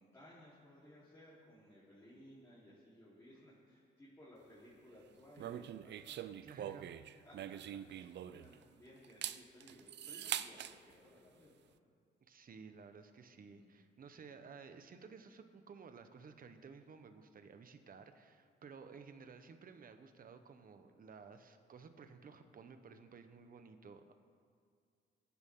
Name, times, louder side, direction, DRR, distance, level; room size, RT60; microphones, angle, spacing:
voice 1, 0.0-6.6 7.2-11.9 13.3-13.8, left 1 dB, 15° left, -9 dB, 4.2 m, -60 dB
sound 1, 5.4-8.6 9.0-10.7, right 11 dB, 60° right, 0.6 m, -43 dB
voice 2, 6.4-7.2 12.3-24.1, right 5 dB, 45° right, 8 dB, 1.2 m, -55 dB
23.0 x 10.0 x 3.9 m, 2.2 s
cardioid pair, 90°, 20 cm